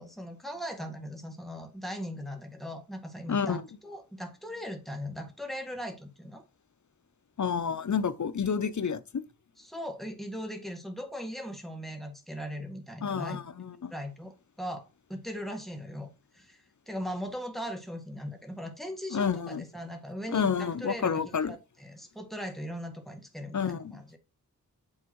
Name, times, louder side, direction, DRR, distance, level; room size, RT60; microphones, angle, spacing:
voice 1, 0.0-6.4 9.6-13.4 13.9-24.2, equal, ahead, 1.9 m, -39 dB
voice 2, 3.3-3.6 7.4-9.2 13.0-13.9 19.1-19.6 20.3-21.6 23.5-24.0, left 6 dB, 50° left, 0.7 m, -29 dB
8.9 x 3.5 x 4.6 m
wide cardioid pair, 50°, 37 cm